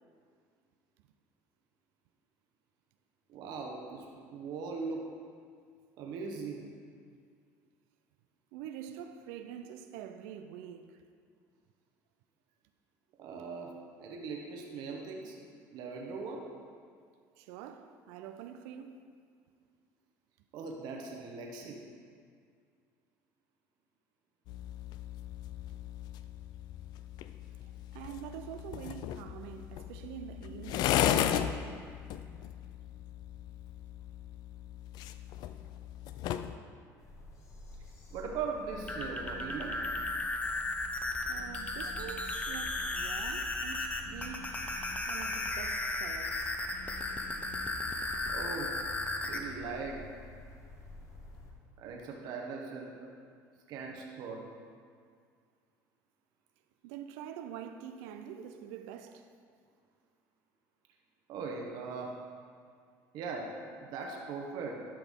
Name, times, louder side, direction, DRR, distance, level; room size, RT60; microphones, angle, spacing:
voice 1, 3.3-5.1 6.0-6.7 13.2-15.4 15.7-16.5 20.5-21.8 30.5-30.7 38.1-39.8 44.1-44.2 48.3-48.8 49.2-50.1 51.8-53.1 53.7-54.5 58.3-58.4 61.3-62.2 63.1-64.8, right 4 dB, 65° right, 1.0 m, -40 dB
voice 2, 8.5-11.0 17.4-19.1 27.6-31.1 41.3-44.6 45.1-46.6 56.8-59.3, right 9 dB, 85° right, 0.4 m, -46 dB
sound 1, 24.5-36.6, left 10 dB, 65° left, 0.4 m, -36 dB
sound 2, 37.0-51.5, left 2 dB, 40° left, 1.5 m, -50 dB
sound 3, 38.7-49.4, left 2 dB, 20° left, 0.8 m, -35 dB
12.0 x 5.9 x 3.6 m
supercardioid pair, 100°, 8 cm